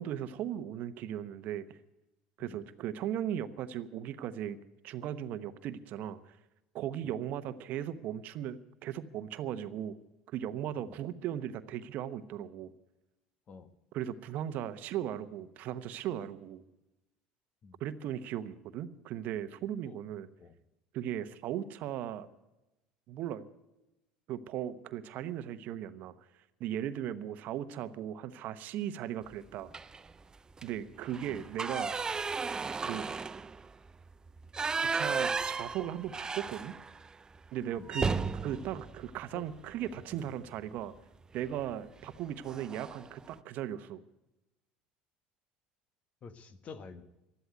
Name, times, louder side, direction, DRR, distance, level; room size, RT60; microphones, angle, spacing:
voice 1, 0.0-1.8 2.4-4.6 4.8-6.4 6.7-10.0 10.3-12.7 13.9-16.6 17.8-20.3 20.9-22.3 23.1-23.4 24.3-26.1 26.6-29.7 30.6-32.0 32.8-33.1 34.8-36.8 37.5-38.1 38.4-40.9 41.3-44.0, right 10 dB, 60° right, 13 dB, 0.9 m, -37 dB
sound 1, 29.7-30.1 30.5-30.7 31.0-37.1 37.4-37.5 37.9-40.0 41.4-41.6 42.0-42.2 42.5-43.1, right 4 dB, 25° right, 0.6 m, -35 dB
voice 2, 39.8-40.3 46.2-47.1, left 5 dB, 45° left, 12 dB, 1.4 m, -49 dB
13.0 x 11.5 x 9.3 m, 0.97 s
hypercardioid pair, 80°, 3 cm